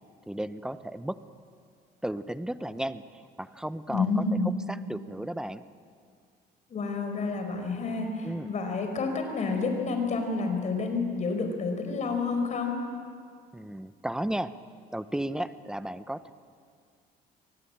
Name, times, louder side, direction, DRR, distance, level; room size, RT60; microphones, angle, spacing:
voice 1, 0.3-1.2 2.0-4.2 4.7-5.6 8.2-8.5 13.5-14.5 14.9-16.3, right 1 dB, 5° right, 12 dB, 0.9 m, -34 dB
voice 2, 3.9-4.5 6.7-12.8, left 4 dB, 45° left, 5 dB, 5.0 m, -29 dB
24.5 x 19.5 x 8.9 m, 2.2 s
cardioid pair, 110°, 17 cm